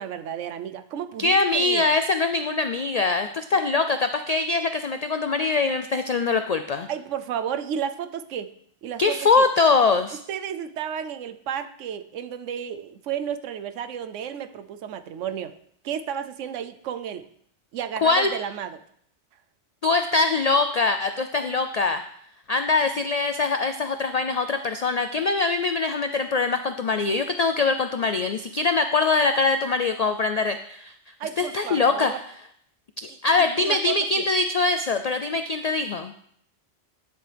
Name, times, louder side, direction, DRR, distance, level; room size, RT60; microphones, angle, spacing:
voice 1, 0.0-1.9 3.5-3.6 6.9-8.5 8.8-9.4 10.3-15.6 15.8-17.3 17.7-18.8 31.2-32.2 33.6-34.3, right 8 dB, 90° right, 11 dB, 1.0 m, -32 dB
voice 2, 1.2-6.9 9.0-10.2 18.0-18.3 19.8-22.0 22.5-30.9 31.4-32.1 33.0-36.1, left 3 dB, 85° left, 8 dB, 0.3 m, -23 dB
10.0 x 7.6 x 3.4 m, 0.67 s
omnidirectional pair, 1.2 m